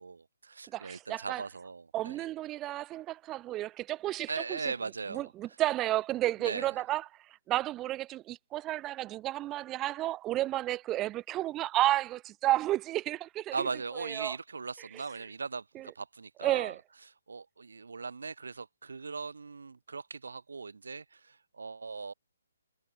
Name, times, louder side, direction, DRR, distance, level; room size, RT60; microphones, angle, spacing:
voice 1, 0.0-2.3 4.3-5.3 6.4-6.7 13.5-16.8 17.3-22.1, right 4 dB, 70° right, 0.7 m, -39 dB
voice 2, 0.7-1.4 1.9-4.6 5.1-7.0 7.5-13.7 14.0-14.4 15.8-15.9 16.4-16.8, right 15 dB, 20° right, 0.5 m, -32 dB
figure-of-eight pair, 135°, 0 cm